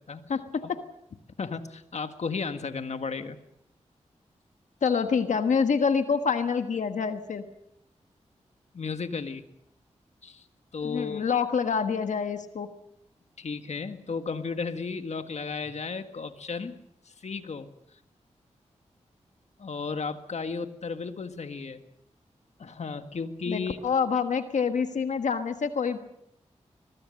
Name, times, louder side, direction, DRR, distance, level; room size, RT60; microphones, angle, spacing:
voice 1, 0.3-0.8 4.8-7.4 10.8-12.7 23.5-26.0, left 6 dB, 85° left, 8 dB, 1.3 m, -26 dB
voice 2, 1.4-3.4 8.7-9.4 10.2-10.5 10.7-11.2 13.4-17.7 19.6-21.8 22.6-23.8, left 4 dB, 65° left, 8 dB, 1.7 m, -34 dB
22.0 x 22.0 x 6.5 m, 0.79 s
cardioid pair, 60°, 12 cm